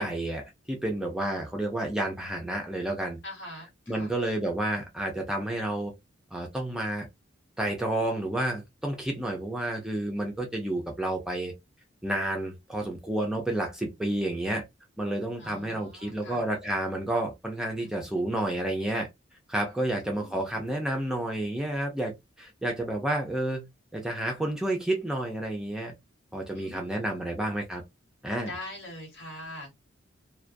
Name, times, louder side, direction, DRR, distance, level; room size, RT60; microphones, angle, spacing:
voice 1, 0.0-3.2 3.9-5.9 6.3-7.1 7.6-11.5 12.0-14.6 15.0-19.1 19.5-22.1 22.4-23.6 23.9-25.9 26.3-27.8 28.2-28.5, right 1 dB, 5° right, 0.3 m, -30 dB
voice 2, 3.2-4.1 15.4-16.4 17.8-18.2 19.7-20.6 26.5-27.3 28.5-29.7, left 1 dB, 65° left, 1.3 m, -44 dB
2.3 x 2.2 x 2.5 m
head